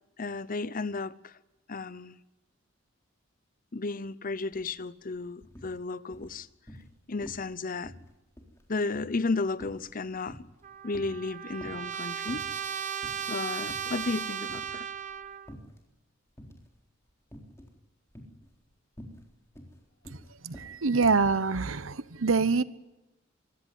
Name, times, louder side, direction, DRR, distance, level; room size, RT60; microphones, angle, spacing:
voice 1, 0.2-1.3 1.7-2.2 3.7-6.5 7.1-7.9 8.7-10.4 10.8-12.4 13.3-14.9, left 3 dB, 45° left, 0.8 m, -33 dB
sound 1, 4.5-4.7 5.0-5.7 6.1-6.9 7.2-7.5 7.8-10.6 10.9-11.9 12.3-12.7 13.0-13.2 13.6-14.2 14.5-15.8 16.4-16.8 17.3-17.8 18.1-21.3, equal, 15° left, 3.8 m, -48 dB
Trumpet, 10.6-15.5, right 8 dB, 40° right, 0.9 m, -36 dB
voice 2, 20.4-22.6, right 4 dB, 80° right, 0.9 m, -25 dB
25.0 x 16.5 x 9.4 m
head